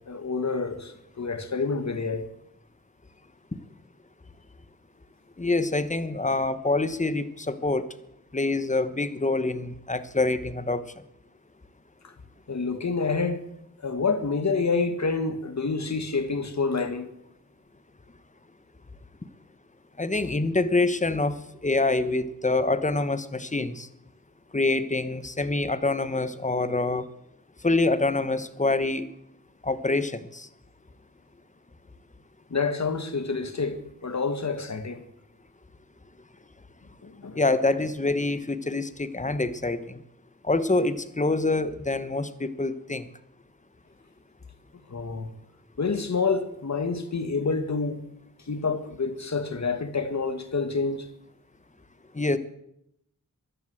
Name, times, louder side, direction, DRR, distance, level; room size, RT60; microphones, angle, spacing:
voice 1, 0.1-2.3 12.5-13.4 13.8-17.1 32.5-35.0 37.0-37.4 44.9-45.3 45.8-48.0 48.5-51.1, left 4 dB, 50° left, 1.8 m, -28 dB
voice 2, 5.4-7.9 8.3-10.8 20.0-21.4 21.6-23.9 24.5-27.1 27.6-29.1 29.6-30.5 37.3-40.0 40.4-43.1 52.1-52.4, left 2 dB, 20° left, 1.1 m, -26 dB
14.0 x 11.5 x 7.8 m
wide cardioid pair, 75°, 34 cm